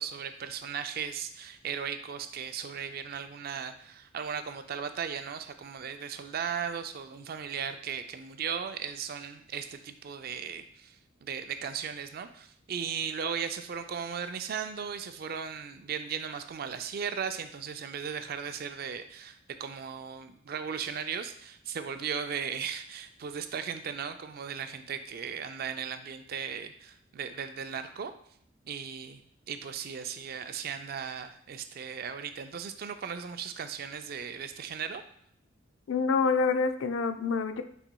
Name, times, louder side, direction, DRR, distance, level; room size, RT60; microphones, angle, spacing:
voice 1, 0.0-28.1 28.7-29.2 29.5-35.0, right 7 dB, 50° right, 9 dB, 0.4 m, -37 dB
voice 2, 35.9-37.6, left 4 dB, 85° left, 9 dB, 0.4 m, -27 dB
5.7 x 4.2 x 2.2 m, 0.64 s
head